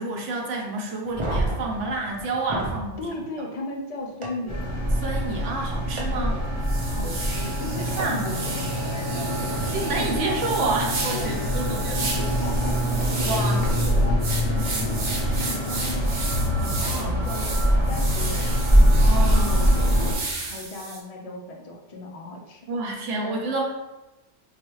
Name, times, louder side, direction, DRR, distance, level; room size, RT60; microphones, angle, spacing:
voice 1, 0.0-3.0 5.0-6.3 7.9-8.3 9.7-12.1 13.3-13.7 16.6-17.2 19.0-19.6 22.7-23.7, right 3 dB, 90° right, 0 dB, 1.0 m, -29 dB
sound 1, 1.0-2.8 4.2-4.3 6.0-6.1 8.0-8.1 9.5-9.6, right 2 dB, 40° right, 0.4 m, -29 dB
voice 2, 3.0-4.6 6.1-6.5 6.8-10.4 11.1-11.3 12.1-13.3 13.6-15.0 15.3-16.1 16.5-22.6 23.2-23.4, left 2 dB, 50° left, 1 dB, 0.5 m, -37 dB
sound 2, 4.5-20.1, equal, 25° left, 1.1 m, -23 dB
sound 3, 6.1-6.2 6.6-21.0, right 3 dB, 60° right, 0.9 m, -34 dB
4.7 x 2.2 x 3.0 m, 1.0 s
omnidirectional pair, 1.2 m